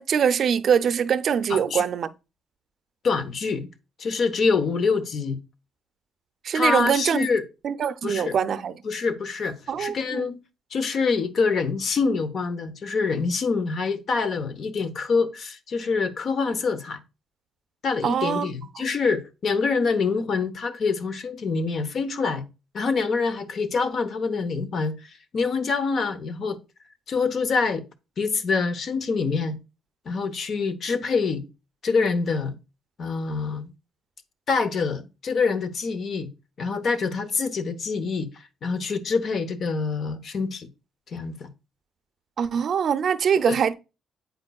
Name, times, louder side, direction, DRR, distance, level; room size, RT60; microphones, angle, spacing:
voice 1, 0.0-2.1 6.4-7.3 7.6-8.7 9.7-10.3 18.0-18.5 42.4-43.7, right 7 dB, 60° right, 0.4 m, -23 dB
voice 2, 1.5-1.8 3.0-3.7 4.0-5.4 6.5-7.4 8.0-8.4 8.8-10.4 10.7-17.0 17.8-22.5 22.7-26.6 27.1-27.8 28.2-29.6 30.1-31.5 31.8-32.5 33.0-33.7 34.5-36.3 36.6-40.7 41.1-41.5 43.5-43.6, left 4 dB, 55° left, 0.8 m, -25 dB
8.0 x 5.2 x 2.3 m
cardioid pair, 90°, 0 cm